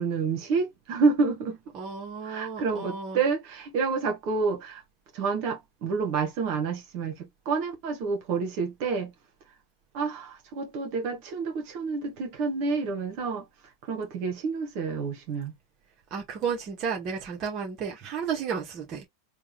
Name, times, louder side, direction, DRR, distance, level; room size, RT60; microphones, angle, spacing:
voice 1, 0.0-1.6 2.2-4.8 5.1-9.1 9.9-13.5 13.9-15.5, right 4 dB, 55° right, 1.6 m, -28 dB
voice 2, 1.7-3.2 16.1-19.1, right 6 dB, 40° right, 1.3 m, -32 dB
3.4 x 2.5 x 3.2 m
hypercardioid pair, 110°, 0 cm